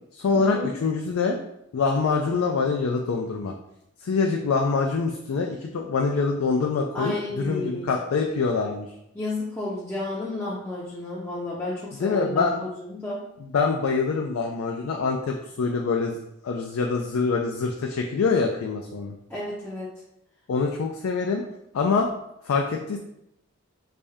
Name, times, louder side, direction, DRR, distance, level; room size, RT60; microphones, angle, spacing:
voice 1, 0.1-1.4 1.7-3.5 4.0-8.9 12.0-12.6 13.5-16.2 16.4-19.1 20.5-21.4 21.7-22.1 22.4-23.0, left 4 dB, 80° left, 2 dB, 0.4 m, -25 dB
voice 2, 6.9-7.9 9.1-13.2 19.3-19.9, left 2 dB, 10° left, -8 dB, 0.5 m, -31 dB
3.3 x 2.6 x 3.4 m, 0.79 s
head